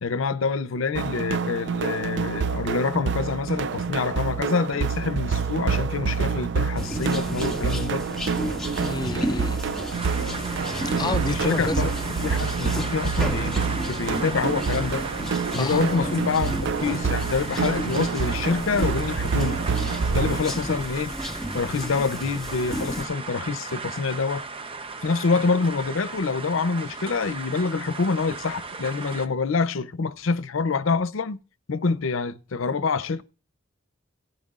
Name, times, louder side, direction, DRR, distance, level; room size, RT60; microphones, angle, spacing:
voice 1, 0.0-8.0 11.3-15.1 15.5-19.6 20.1-21.1 21.5-24.4 25.0-31.4 31.7-33.2, left 4 dB, 85° left, 0.6 m, -26 dB
sound 1, 1.0-20.4, right 5 dB, 60° right, 0.4 m, -27 dB
sound 2, 6.8-23.1, equal, ahead, 1.8 m, -33 dB
voice 2, 8.8-9.6 10.8-11.9 15.6-15.8, left 2 dB, 20° left, 0.5 m, -30 dB
sound 3, 9.9-29.3, right 4 dB, 25° right, 0.8 m, -36 dB
16.5 x 10.5 x 2.4 m
head